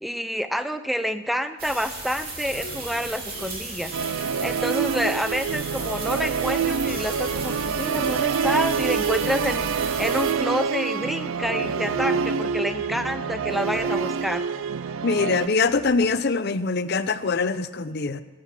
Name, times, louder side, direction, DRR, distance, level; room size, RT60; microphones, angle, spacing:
voice 1, 0.0-3.9 4.2-14.4, equal, ahead, 10 dB, 0.5 m, -28 dB
sound 1, 1.6-10.3, right 3 dB, 45° right, 2.5 m, -35 dB
sound 2, 2.5-16.2, left 1 dB, 75° left, 1.6 m, -43 dB
Musical instrument, 3.9-15.5, right 6 dB, 75° right, 0.4 m, -26 dB
voice 2, 15.0-18.2, left 4 dB, 50° left, 13 dB, 0.6 m, -23 dB
21.0 x 7.9 x 5.8 m, 1.2 s
head